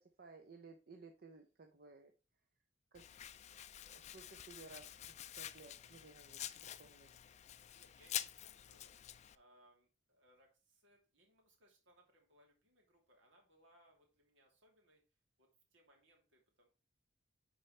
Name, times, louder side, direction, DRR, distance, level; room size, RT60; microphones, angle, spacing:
voice 1, 0.2-2.1 2.9-3.0 3.9-7.1, right 3 dB, 50° right, 5 dB, 0.7 m, -58 dB
Domestic sounds home sounds, 2.9-9.3, left 12 dB, 35° left, 0.3 m, -48 dB
voice 2, 6.5-6.9 7.3-7.4 7.7-9.0 9.3-15.0 15.4-16.7, right 1 dB, 80° right, 1 dB, 2.8 m, -70 dB
9.9 x 4.5 x 3.3 m, 0.32 s
head